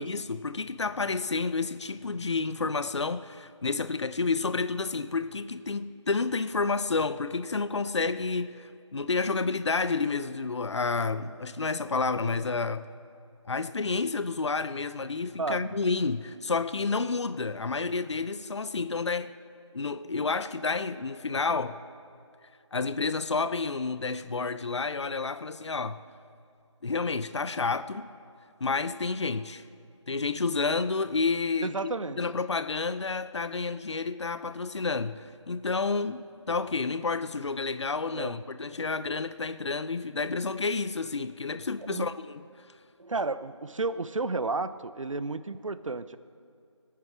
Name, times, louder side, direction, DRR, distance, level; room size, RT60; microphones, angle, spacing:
voice 1, 0.0-12.9 13.5-19.3 19.7-21.8 22.7-26.0 26.8-28.1 28.6-29.6 30.1-42.4, left 4 dB, 65° left, 0.6 m, -30 dB
voice 2, 31.6-32.2 38.1-38.3 41.9-42.1 43.0-46.2, right 3 dB, 90° right, 0.7 m, -32 dB
19.5 x 9.6 x 6.0 m
figure-of-eight pair, 170°, 16 cm